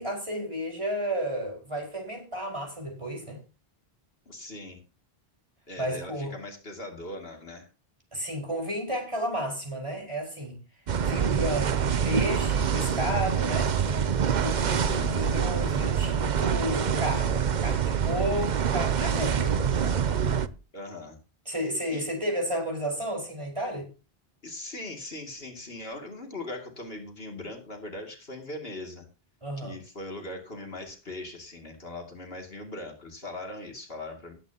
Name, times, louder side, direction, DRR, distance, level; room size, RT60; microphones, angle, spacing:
voice 1, 0.0-3.4 5.8-6.3 8.1-10.6 11.0-13.7 14.3-20.2 21.5-23.9 29.4-29.8, equal, 30° right, 0 dB, 5.2 m, -32 dB
voice 2, 4.3-4.8 5.7-7.7 14.5-15.2 20.4-21.2 21.9-22.0 24.4-29.1 29.6-34.3, left 2 dB, 70° left, 2 dB, 2.9 m, -40 dB
sound 1, 10.9-20.5, right 7 dB, 50° right, 0.8 m, -26 dB
sound 2, 12.7-17.7, right 1 dB, 75° right, 4.6 m, -49 dB
19.5 x 9.0 x 2.9 m, 0.31 s
omnidirectional pair, 1.0 m